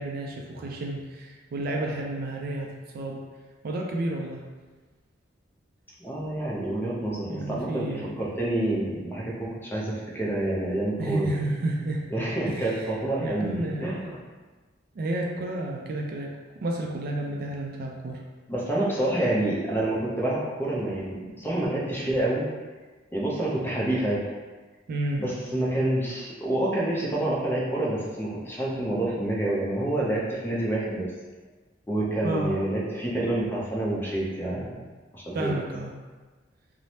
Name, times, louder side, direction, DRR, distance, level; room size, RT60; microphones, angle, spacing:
voice 1, 0.0-3.2 3.6-4.4 7.3-8.2 11.0-12.1 12.5-12.9 13.2-14.0 15.0-18.2 24.9-25.3 32.2-32.6 35.3-35.9, right 1 dB, 50° right, 0 dB, 0.3 m, -31 dB
voice 2, 6.0-11.4 12.1-14.2 18.5-22.4 23.1-24.2 25.2-31.1 31.9-34.8 35.1-35.5, right 1 dB, 10° left, -6 dB, 0.5 m, -28 dB
3.2 x 2.0 x 2.7 m, 1.3 s
head